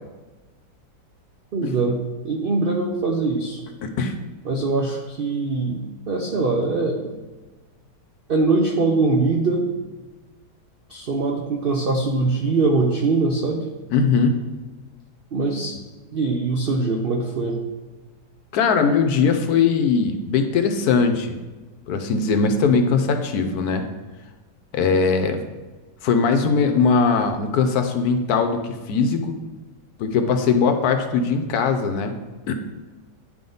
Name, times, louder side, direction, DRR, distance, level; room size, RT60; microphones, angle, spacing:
voice 1, 1.5-2.0 2.2-3.6 4.5-7.1 8.3-9.6 10.9-13.7 15.3-15.8 16.1-17.6, right 3 dB, 85° right, 1 dB, 0.5 m, -22 dB
voice 2, 3.8-4.1 13.9-14.4 18.5-21.4 21.9-23.8 24.7-25.4 26.0-29.3 30.0-32.1 32.5-32.6, left 5 dB, 70° left, 7 dB, 1.1 m, -20 dB
9.8 x 3.6 x 3.8 m, 1.2 s
omnidirectional pair, 1.9 m